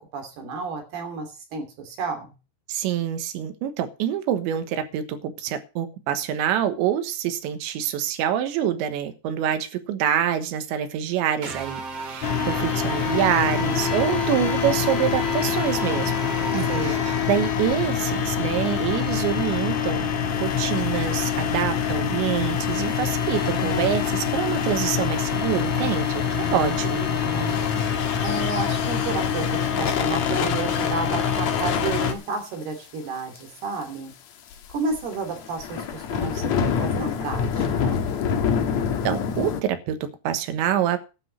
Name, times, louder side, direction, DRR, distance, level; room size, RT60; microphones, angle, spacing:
voice 1, 0.1-2.3 16.7-17.2 26.2-27.6 28.2-29.5 29.8-34.1 34.7-38.0, right 4 dB, 60° right, 5 dB, 4.7 m, -32 dB
voice 2, 2.7-16.1 16.5-20.1 20.4-27.1 39.1-41.0, right 10 dB, 90° right, 9 dB, 3.6 m, -26 dB
sound 1, 11.4-17.9, right 4 dB, 45° right, 2.5 m, -34 dB
sound 2, 12.2-32.1, left 7 dB, 60° left, 2.1 m, -25 dB
sound 3, 21.0-21.1 21.3-21.7 22.4-22.5 23.2-23.3 23.9-24.0 24.3-24.4 24.6-24.7 25.8-26.1 26.5-26.6 27.5-27.6 28.1-28.6 28.9-29.1 29.6-30.3 31.4-31.6 31.9-32.0 32.3-32.4 32.6-32.7 33.3-33.4 33.8-33.9 34.5-39.6, left 6 dB, 75° left, 1.6 m, -26 dB
12.5 x 6.3 x 8.0 m, 0.31 s
omnidirectional pair, 5.2 m